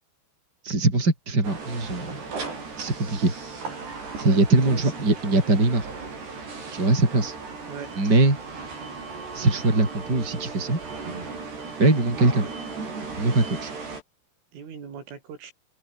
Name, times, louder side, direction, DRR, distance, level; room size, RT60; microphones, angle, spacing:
voice 1, 0.6-2.2 2.8-3.3 4.2-5.9 6.7-7.4 8.0-8.4 9.3-10.8 11.8-12.4 13.2-13.7, right 2 dB, 20° right, 6.2 m, -21 dB
sound 1, 1.4-14.0, right 4 dB, 60° right, 10.0 m, -36 dB
voice 2, 4.2-4.8 5.3-5.4 7.7-7.9 12.4-12.5 14.5-15.5, right 6 dB, 90° right, 7.9 m, -39 dB
omnidirectional pair, 5.5 m